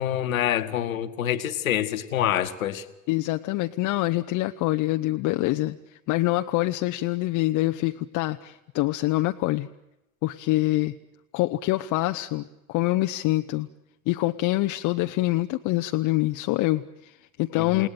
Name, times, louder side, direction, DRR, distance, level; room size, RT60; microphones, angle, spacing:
voice 1, 0.0-2.9 17.5-17.9, left 11 dB, 70° left, 10 dB, 1.6 m, -26 dB
voice 2, 3.1-5.8 6.1-9.7 10.2-10.9 11.3-13.7 14.1-17.9, left 18 dB, 45° left, 7 dB, 0.8 m, -25 dB
29.0 x 18.5 x 9.0 m, 0.95 s
figure-of-eight pair, 70°, 42 cm